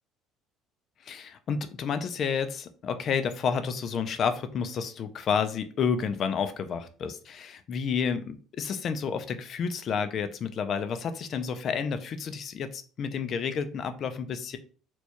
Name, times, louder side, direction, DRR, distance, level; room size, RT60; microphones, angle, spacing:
voice 1, 1.0-14.6, left 6 dB, 35° left, 10 dB, 0.4 m, -30 dB
4.3 x 2.2 x 3.0 m, 0.40 s
cardioid pair, 170°, 0 cm